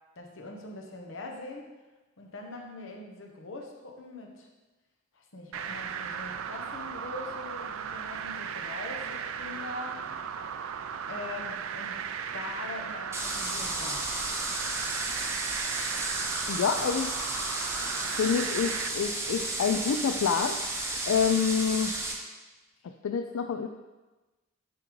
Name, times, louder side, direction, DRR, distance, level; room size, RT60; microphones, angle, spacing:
voice 1, 0.2-1.7 2.2-4.5 5.1-10.1 11.1-12.0 12.3-14.1, left 2 dB, 70° left, 2 dB, 0.9 m, -42 dB
sound 1, 5.5-18.9, right 7 dB, 85° right, 0.4 m, -36 dB
sound 2, 13.1-22.1, right 2 dB, 15° right, 0.6 m, -33 dB
voice 2, 16.5-17.1 18.2-20.6 20.9-21.9 22.8-23.7, left 6 dB, 90° left, 5 dB, 0.3 m, -27 dB
9.5 x 3.6 x 3.1 m, 1.1 s
head